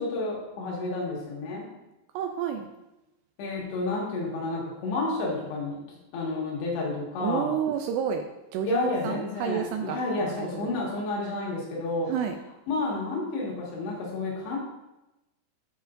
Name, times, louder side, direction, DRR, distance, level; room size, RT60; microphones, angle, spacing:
voice 1, 0.0-1.7 3.4-5.8 6.1-7.6 8.6-12.1 12.7-14.6, left 2 dB, 65° left, -3 dB, 3.5 m, -30 dB
voice 2, 2.1-2.7 7.2-8.3 8.5-10.7 12.1-12.4, right 8 dB, 85° right, 5 dB, 2.4 m, -30 dB
12.5 x 5.1 x 2.5 m, 0.97 s
omnidirectional pair, 5.4 m